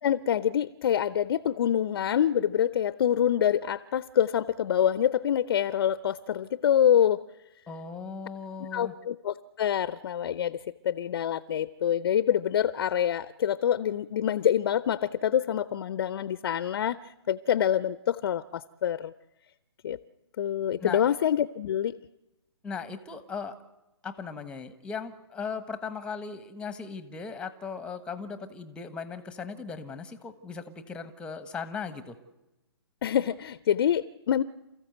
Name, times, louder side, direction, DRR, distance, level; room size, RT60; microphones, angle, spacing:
voice 1, 0.0-7.2 8.7-10.6 10.8-17.0 17.3-19.1 19.8-20.0 20.4-21.9 33.0-34.4, left 10 dB, 50° left, 15 dB, 0.7 m, -26 dB
voice 2, 7.7-8.9 20.8-21.1 22.6-23.6 24.0-32.2, left 5 dB, 5° left, 11 dB, 1.3 m, -38 dB
28.5 x 14.5 x 7.9 m, 0.98 s
hypercardioid pair, 145°, 15 cm